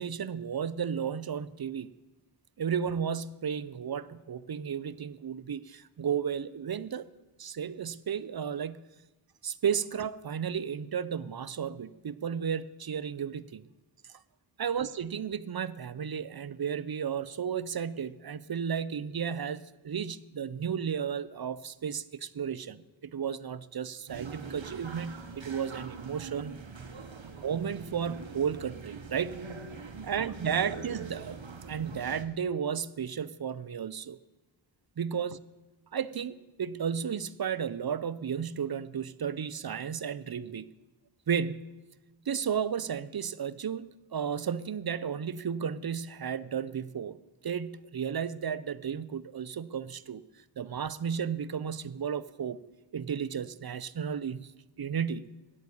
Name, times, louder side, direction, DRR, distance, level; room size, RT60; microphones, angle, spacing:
voice 1, 0.0-1.9 2.6-7.1 7.4-8.9 9.4-13.6 14.6-26.5 27.4-29.4 30.0-31.4 31.7-34.2 35.0-35.4 35.9-40.7 41.3-41.8 42.3-47.2 47.4-50.2 50.6-52.6 52.9-54.5 54.8-55.4, right 7 dB, 50° right, 17 dB, 0.5 m, -33 dB
sound 1, 24.1-32.3, right 5 dB, 70° right, 1.1 m, -43 dB
9.9 x 8.5 x 8.4 m, 1.1 s
wide cardioid pair, 40°, 48 cm